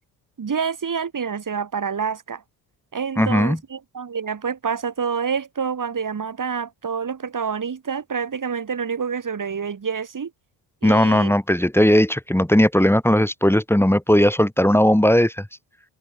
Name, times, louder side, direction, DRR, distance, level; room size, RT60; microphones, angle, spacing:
voice 1, 0.4-2.4 2.9-10.3 10.8-11.3, right 6 dB, 40° right, 4.3 m, -27 dB
voice 2, 3.2-3.6 10.8-15.5, equal, 5° left, 3.8 m, -17 dB
supercardioid pair, 60°, 49 cm